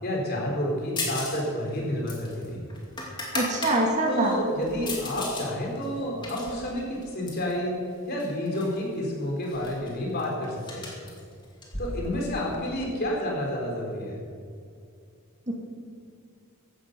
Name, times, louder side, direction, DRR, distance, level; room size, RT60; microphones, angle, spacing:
voice 1, 0.0-2.6 4.1-10.9 11.8-14.2, left 1 dB, 45° left, -2 dB, 4.0 m, -30 dB
sound 1, 1.0-1.4 1.7-3.8 4.2-5.5 5.8-7.5 8.2-8.8 9.0-9.1 9.4-12.5, left 2 dB, 20° left, 2.7 m, -36 dB
voice 2, 3.3-4.4 15.5-15.6, right 1 dB, 30° right, 0 dB, 2.1 m, -24 dB
15.0 x 11.5 x 6.8 m, 2.3 s
head